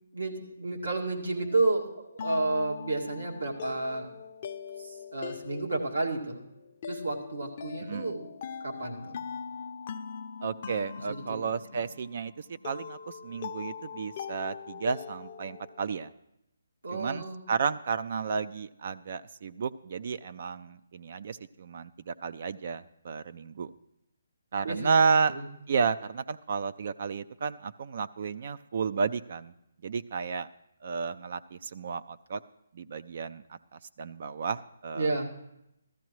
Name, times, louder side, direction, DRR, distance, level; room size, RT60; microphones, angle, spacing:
voice 1, 0.1-4.1 4.8-6.4 6.9-8.3 8.6-9.2 11.1-11.4 16.8-17.4 24.6-24.9 25.3-25.5 34.9-35.3, right 2 dB, 85° right, -1 dB, 2.0 m, -31 dB
sound 1, 1.4-16.1, left 6 dB, 40° left, 0.6 m, -42 dB
voice 2, 7.8-8.1 10.4-16.1 16.9-23.7 24.5-25.3 25.7-29.5 29.8-30.5 30.8-32.4 32.7-35.1, right 5 dB, 50° right, 13 dB, 0.3 m, -32 dB
15.0 x 13.5 x 3.1 m, 0.85 s
hypercardioid pair, 150°, 0 cm